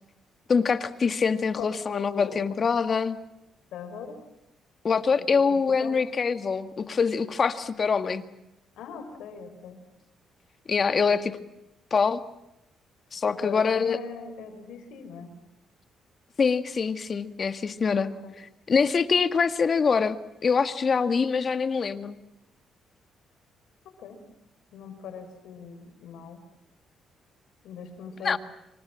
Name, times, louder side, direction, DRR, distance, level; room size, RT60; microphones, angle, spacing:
voice 1, 0.5-3.2 4.8-8.2 10.7-11.4 11.9-12.2 13.1-14.0 16.4-18.1 18.7-20.2 20.4-22.2 28.2-28.4, left 5 dB, 40° left, 11 dB, 1.7 m, -24 dB
voice 2, 1.6-2.4 3.7-4.2 5.2-6.0 8.8-9.8 13.3-15.3 18.0-18.4 24.0-24.2 24.7-26.4 27.6-28.4, left 6 dB, 85° left, 7 dB, 5.5 m, -40 dB
27.0 x 24.5 x 7.5 m, 0.89 s
cardioid pair, 90°, 0 cm